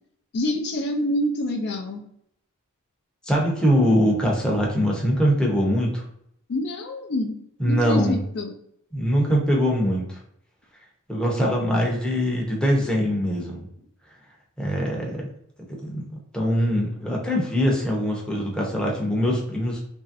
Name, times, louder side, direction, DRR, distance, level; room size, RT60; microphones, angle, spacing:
voice 1, 0.3-2.0 6.5-8.5, left 1 dB, 50° left, 3 dB, 0.4 m, -27 dB
voice 2, 3.2-6.0 7.6-8.2 8.9-10.2 11.1-13.7 14.6-15.3 15.8-19.8, equal, 5° left, -3 dB, 0.7 m, -22 dB
3.0 x 2.6 x 2.4 m, 0.72 s
head